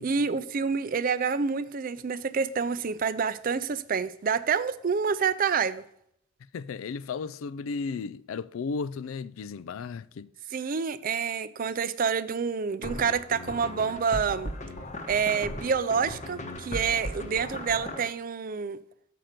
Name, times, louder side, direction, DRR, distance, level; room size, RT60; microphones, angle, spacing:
voice 1, 0.0-5.8 10.5-14.5 15.1-18.8, right 6 dB, 40° right, 0.4 m, -28 dB
voice 2, 6.5-10.3, left 4 dB, 75° left, 0.4 m, -34 dB
sound 1, 12.8-18.0, left 1 dB, 35° left, 1.0 m, -37 dB
7.6 x 5.9 x 5.0 m
head